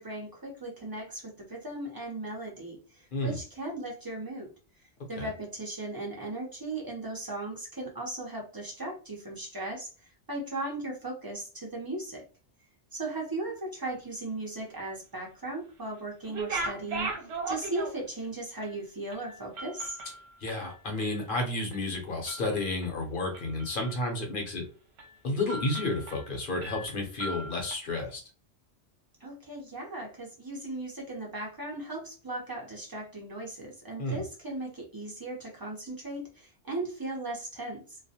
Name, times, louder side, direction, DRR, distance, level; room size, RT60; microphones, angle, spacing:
voice 1, 0.0-4.5 5.1-9.9 10.3-12.2 12.9-17.1 17.5-20.0 29.2-38.0, right 2 dB, 30° right, -1 dB, 0.4 m, -37 dB
sound 1, 16.2-18.2 18.6-18.7 19.1-21.3 21.6-21.9 22.3-22.9 23.3-24.1 24.5-24.6 25.0-25.2 25.5-26.3 26.6-27.7, right 3 dB, 65° right, 0.9 m, -38 dB
voice 2, 20.4-24.6 25.2-28.2 34.0-34.2, left 2 dB, 50° left, 1 dB, 0.8 m, -31 dB
2.3 x 2.1 x 2.7 m, 0.36 s
omnidirectional pair, 1.2 m